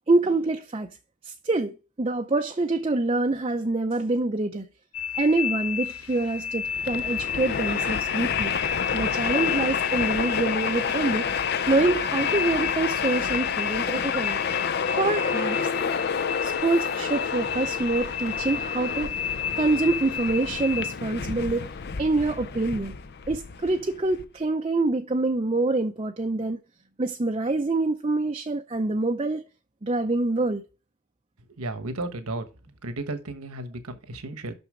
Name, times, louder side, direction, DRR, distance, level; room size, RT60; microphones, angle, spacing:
voice 1, 0.1-0.9 1.2-4.6 5.1-8.5 8.9-11.3 11.7-14.4 15.0-15.7 16.4-19.2 19.5-21.7 22.0-22.9 23.3-26.6 27.0-29.4 29.8-30.6, right 2 dB, 25° right, 0.5 m, -26 dB
sound 1, 4.9-21.0, left 8 dB, 90° left, 1.1 m, -32 dB
Train, 6.6-24.2, left 6 dB, 50° left, 0.5 m, -29 dB
voice 2, 31.5-32.4 32.8-34.5, right 2 dB, 85° right, 1.3 m, -33 dB
6.7 x 6.2 x 4.9 m
head